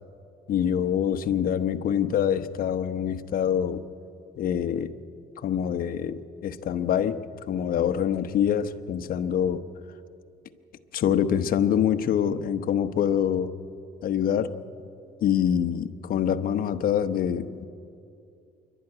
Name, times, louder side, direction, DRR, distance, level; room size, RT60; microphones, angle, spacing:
voice 1, 0.5-3.9 4.4-4.9 5.4-7.2 7.5-9.6 10.9-13.5 14.0-14.5 15.2-17.6, left 9 dB, 60° left, 10 dB, 1.0 m, -25 dB
26.0 x 12.0 x 9.8 m, 2.5 s
cardioid pair, 110°, 17 cm